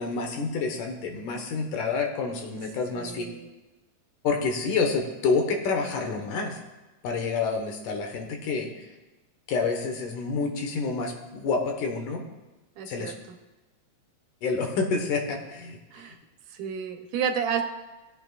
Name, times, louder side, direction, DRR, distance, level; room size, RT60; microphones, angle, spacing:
voice 1, 0.0-3.3 4.2-6.6 7.0-8.7 9.5-12.2 12.9-13.1 14.4-15.8, left 4 dB, 85° left, 3 dB, 2.9 m, -28 dB
voice 2, 2.9-3.5 12.8-13.4 15.9-16.2 16.5-17.6, right 7 dB, 90° right, 6 dB, 2.5 m, -31 dB
18.0 x 8.9 x 2.4 m, 1.1 s
omnidirectional pair, 3.5 m